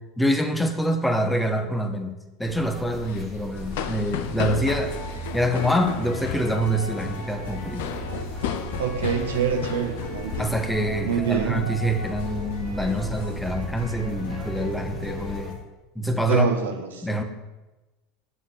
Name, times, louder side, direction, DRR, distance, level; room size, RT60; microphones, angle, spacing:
voice 1, 0.2-2.1 2.4-4.9 5.3-7.8 10.4-15.6 15.9-16.5 17.0-17.2, equal, 5° left, 5 dB, 1.5 m, -25 dB
sound 1, 2.5-15.5, equal, 15° right, 2.0 m, -37 dB
sound 2, 3.0-11.1 11.3-11.6 12.0-12.3 12.7-13.9, left 9 dB, 60° left, 1.0 m, -35 dB
sound 3, 4.8-15.6, left 1 dB, 75° left, 2.7 m, -39 dB
voice 2, 8.8-10.5 11.1-11.6 16.3-17.0, right 7 dB, 70° right, 5 dB, 1.3 m, -25 dB
9.3 x 7.3 x 8.6 m, 1.1 s
figure-of-eight pair, 75°, 0 cm